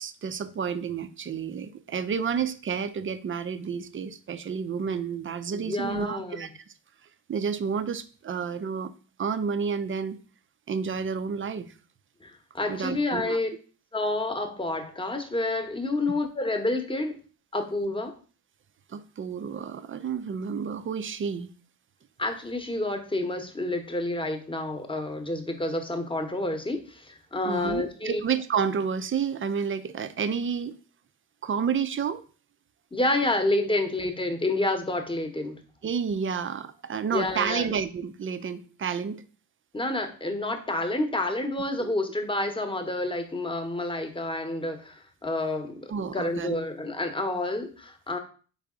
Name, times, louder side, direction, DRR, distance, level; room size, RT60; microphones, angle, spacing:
voice 1, 0.0-6.5 7.3-8.9 9.2-10.2 10.7-11.7 12.7-13.4 18.9-21.5 27.4-30.8 31.4-32.2 33.6-33.7 35.8-39.2 41.8-41.9 45.9-46.6, right 6 dB, 30° right, 12 dB, 0.4 m, -30 dB
voice 2, 5.5-6.5 12.2-13.5 13.9-17.2 17.5-18.1 22.2-28.2 32.9-35.6 37.1-37.7 39.7-48.2, left 2 dB, 10° left, 6 dB, 1.0 m, -29 dB
4.0 x 3.5 x 3.7 m, 0.39 s
supercardioid pair, 65°, 45 cm